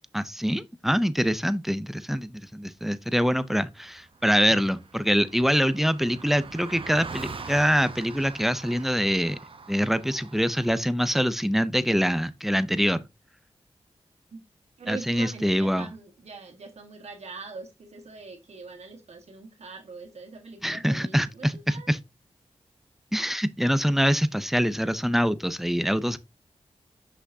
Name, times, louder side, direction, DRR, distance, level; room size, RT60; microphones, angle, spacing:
voice 1, 0.1-9.4 9.7-13.0 14.9-15.9 20.6-22.0 23.1-26.2, equal, 5° right, 0.5 m, -24 dB
Car passing by, 3.7-3.8 4.0-10.8, right 4 dB, 55° right, 0.8 m, -43 dB
voice 2, 14.8-21.9, right 4 dB, 85° right, 1.7 m, -42 dB
6.1 x 5.7 x 2.7 m
cardioid pair, 65°, 11 cm